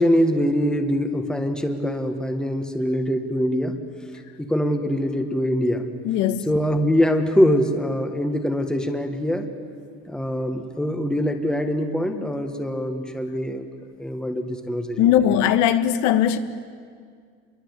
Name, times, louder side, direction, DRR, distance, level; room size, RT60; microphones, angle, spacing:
voice 1, 0.0-3.7 4.4-5.9 6.5-9.5 10.1-13.7 14.0-15.1, equal, 5° left, 1.6 m, -23 dB
voice 2, 6.0-6.5 15.0-16.4, left 10 dB, 80° left, 1.3 m, -19 dB
27.5 x 22.5 x 8.2 m
cardioid pair, 165°, 29 cm